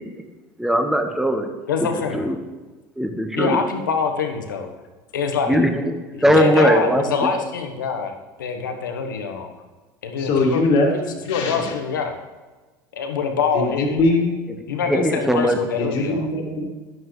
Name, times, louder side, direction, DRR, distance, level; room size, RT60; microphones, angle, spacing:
voice 1, 0.6-1.5 1.8-2.4 3.0-3.6 5.5-7.5 14.5-15.6 15.9-16.0, equal, 5° right, 5 dB, 1.5 m, -20 dB
voice 2, 1.7-2.3 3.3-4.7 5.1-5.6 6.1-8.1 8.4-9.5 10.0-10.6 10.9-12.1 12.9-14.0 14.7-16.3, left 5 dB, 90° left, 5 dB, 1.3 m, -25 dB
voice 3, 10.2-10.9 11.2-11.7 13.5-14.4 15.7-16.6, left 2 dB, 55° left, -1 dB, 2.4 m, -21 dB
11.0 x 11.0 x 3.3 m, 1.3 s
hypercardioid pair, 80°, 10 cm